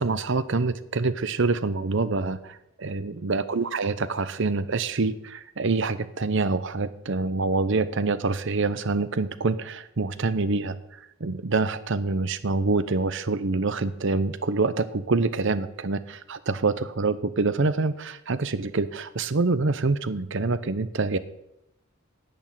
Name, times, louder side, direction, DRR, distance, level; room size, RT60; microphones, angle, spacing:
voice 1, 0.0-10.8 11.2-21.2, right 3 dB, 60° right, 13 dB, 0.7 m, -26 dB
10.5 x 6.3 x 9.0 m, 0.84 s
head